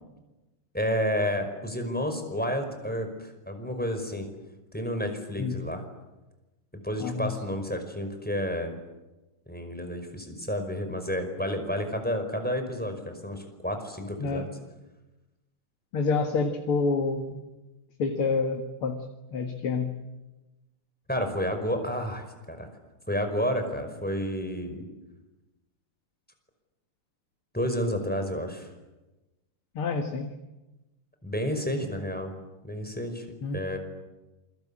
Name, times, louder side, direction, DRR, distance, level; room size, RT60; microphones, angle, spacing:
voice 1, 0.7-4.3 4.7-5.8 6.8-8.7 9.5-14.5 21.1-22.7 23.1-24.9 27.5-28.7 31.2-32.3 32.6-33.3 33.5-33.8, equal, 5° left, 5 dB, 5.1 m, -30 dB
voice 2, 7.0-7.3 14.2-14.5 15.9-17.4 18.0-19.0 19.3-19.9 29.8-30.3 33.4-33.6, left 4 dB, 80° left, 4 dB, 2.6 m, -28 dB
28.0 x 24.0 x 8.8 m, 1.1 s
omnidirectional pair, 2.4 m